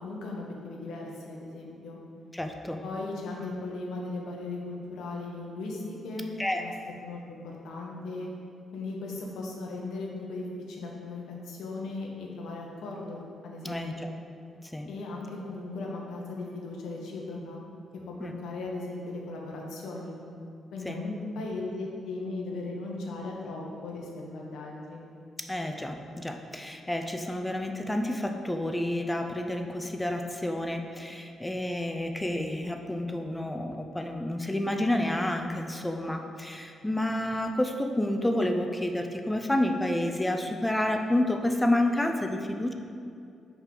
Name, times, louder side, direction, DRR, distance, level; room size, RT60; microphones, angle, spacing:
voice 1, 0.0-2.0 2.8-6.3 6.6-6.7 7.0-8.3 8.7-14.1 14.9-17.6 18.1-20.1 20.7-25.0, left 2 dB, 85° left, -1 dB, 1.1 m, -37 dB
voice 2, 2.3-2.8 6.4-6.7 13.6-13.9 14.6-14.9 18.2-18.3 20.8-21.0 25.4-42.7, left 1 dB, 5° left, 4 dB, 0.3 m, -29 dB
5.6 x 3.7 x 5.9 m, 2.5 s
cardioid pair, 180°, 0 cm